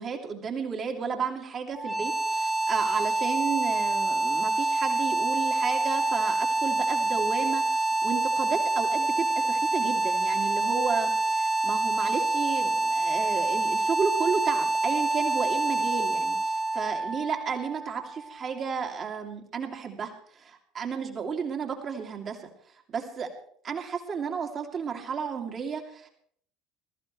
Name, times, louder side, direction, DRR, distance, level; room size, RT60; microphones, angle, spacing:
voice 1, 0.0-22.5 22.9-23.3 23.6-26.1, right 6 dB, 35° right, 3 dB, 2.7 m, -33 dB
sound 1, 1.7-18.7, right 2 dB, 10° right, 2.2 m, -27 dB
21.0 x 14.5 x 3.3 m, 0.64 s
figure-of-eight pair, 65°, 0 cm